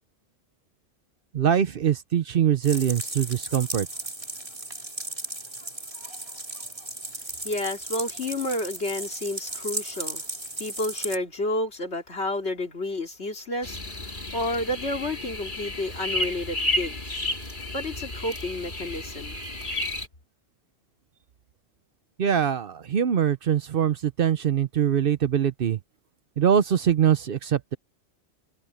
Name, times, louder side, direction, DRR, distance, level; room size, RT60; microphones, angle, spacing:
voice 1, 1.3-3.9 22.2-25.8 26.4-27.8, right 9 dB, 60° right, 0.8 m, -23 dB
sound 1, 2.6-11.2, right 1 dB, 30° right, 3.0 m, -36 dB
voice 2, 7.4-10.2 10.6-13.8 14.3-17.0 17.7-19.4, left 1 dB, 70° left, 3.1 m, -30 dB
sound 2, 13.6-20.1, left 1 dB, 45° left, 3.0 m, -32 dB
omnidirectional pair, 1.2 m